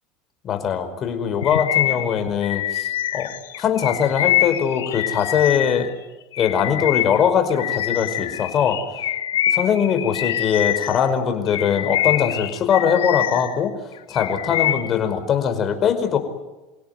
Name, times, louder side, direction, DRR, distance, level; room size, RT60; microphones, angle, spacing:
voice 1, 0.4-2.9 3.1-3.3 3.6-5.9 6.4-8.8 9.5-13.7 14.1-16.2, left 8 dB, 40° left, 8 dB, 5.2 m, -21 dB
Bird vocalization bird call bird song, 1.4-5.9 6.3-11.1 11.5-13.6 13.9-15.0, left 12 dB, 85° left, 1.7 m, -25 dB
28.5 x 17.0 x 9.5 m, 1.1 s
hypercardioid pair, 90°, 0 cm